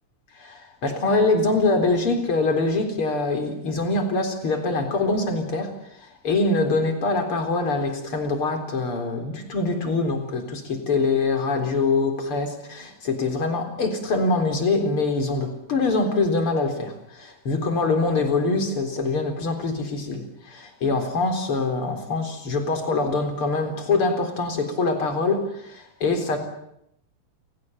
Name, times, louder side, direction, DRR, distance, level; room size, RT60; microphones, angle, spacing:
voice 1, 0.4-5.7 6.0-26.4, left 3 dB, 40° left, 4.6 m, -24 dB
29.0 x 18.5 x 9.5 m
omnidirectional pair, 3.8 m